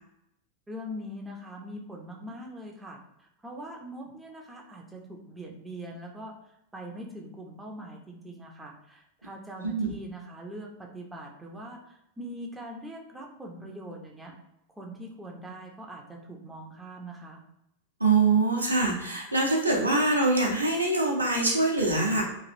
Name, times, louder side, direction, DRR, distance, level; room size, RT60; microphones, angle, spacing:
voice 1, 0.7-6.3 6.7-14.3 14.8-17.4, equal, 10° right, 0 dB, 0.6 m, -42 dB
voice 2, 9.6-9.9 18.0-22.2, right 3 dB, 85° right, -2 dB, 0.7 m, -24 dB
3.1 x 2.4 x 2.6 m, 0.83 s
figure-of-eight pair, 90°, 0 cm